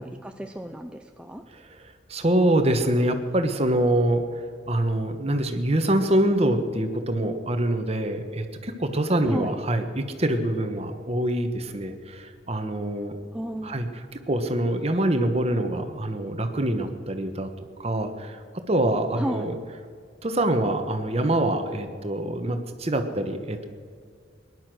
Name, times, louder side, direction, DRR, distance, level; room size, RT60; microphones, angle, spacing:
voice 1, 0.0-1.4 9.2-9.6 13.3-13.8 19.1-19.4, equal, 5° right, 5 dB, 0.5 m, -33 dB
voice 2, 1.5-13.1 13.6-13.9 14.3-17.5 17.8-19.6 20.2-23.7, right 1 dB, 35° right, 7 dB, 1.3 m, -25 dB
19.0 x 11.0 x 6.3 m, 2.1 s
head